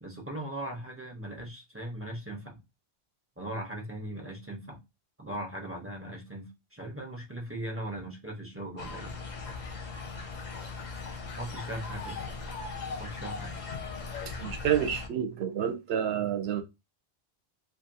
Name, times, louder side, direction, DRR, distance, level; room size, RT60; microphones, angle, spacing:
voice 1, 0.0-2.6 3.4-4.8 5.2-9.2 11.4-12.2 13.0-13.6, right 1 dB, 15° right, 0.5 m, -39 dB
sound 1, 8.8-15.1, left 4 dB, 50° left, 0.6 m, -39 dB
voice 2, 14.3-16.6, right 9 dB, 70° right, 0.8 m, -29 dB
2.6 x 2.4 x 2.6 m
omnidirectional pair, 1.1 m